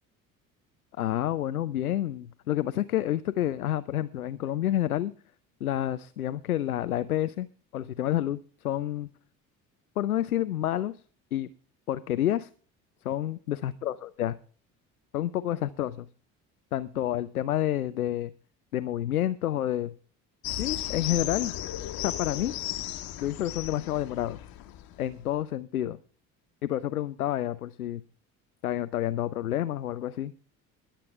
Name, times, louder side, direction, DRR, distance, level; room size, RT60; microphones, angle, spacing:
voice 1, 1.0-5.1 5.6-7.5 7.7-9.1 10.0-11.0 11.3-11.5 11.9-12.5 13.0-14.3 15.1-16.1 16.7-18.3 18.7-20.0 20.6-21.5 22.0-22.5 23.2-24.4 25.0-26.0 26.6-28.0 28.6-30.3, left 12 dB, 85° left, 14 dB, 0.5 m, -29 dB
sound 1, 20.4-25.2, left 13 dB, 55° left, 1.5 m, -35 dB
21.5 x 8.4 x 3.4 m, 0.42 s
figure-of-eight pair, 55°, 43 cm